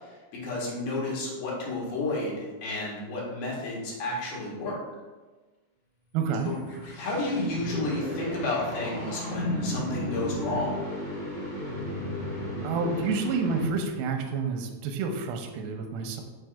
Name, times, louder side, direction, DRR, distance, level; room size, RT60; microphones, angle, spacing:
voice 1, 0.4-4.8 6.4-6.6 7.0-10.8, left 2 dB, 75° left, -4 dB, 3.1 m, -31 dB
voice 2, 6.1-6.5 12.6-16.2, right 5 dB, 80° right, 4 dB, 2.3 m, -29 dB
sound 1, 6.2-14.1, left 1 dB, 45° left, 1.9 m, -34 dB
6.6 x 6.3 x 2.4 m, 1.2 s
omnidirectional pair, 4.5 m